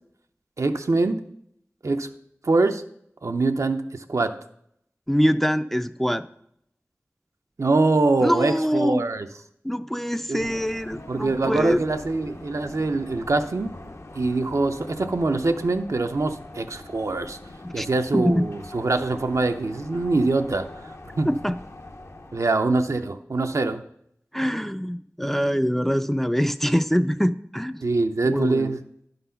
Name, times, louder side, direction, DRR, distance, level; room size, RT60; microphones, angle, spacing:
voice 1, 0.6-1.2 1.8-2.1 2.4-2.8 3.2-4.4 7.6-9.3 10.3-10.5 11.1-13.7 14.1-17.4 17.7-21.3 22.3-23.8 27.8-28.8, right 3 dB, 80° right, 7 dB, 0.5 m, -24 dB
voice 2, 5.1-6.2 8.2-9.0 9.6-11.8 17.6-17.9 18.1-18.4 21.3-21.6 24.3-27.8 28.2-28.8, equal, 5° left, 11 dB, 0.3 m, -24 dB
sound 1, 10.4-22.5, left 2 dB, 60° left, 0.7 m, -43 dB
11.0 x 4.0 x 5.6 m, 0.72 s
wide cardioid pair, 55°, 5 cm